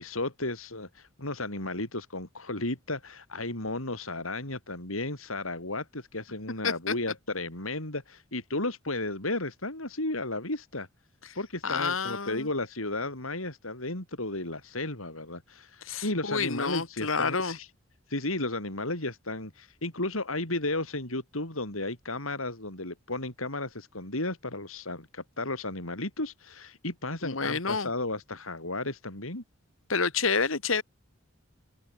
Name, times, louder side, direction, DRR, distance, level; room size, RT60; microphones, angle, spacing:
voice 1, 0.0-10.9 11.4-17.7 18.1-29.4, left 2 dB, 90° left, 7.1 m, -34 dB
voice 2, 6.6-6.9 11.6-12.5 15.9-17.6 27.2-27.9 29.9-30.8, left 5 dB, 70° left, 2.3 m, -29 dB
open air
head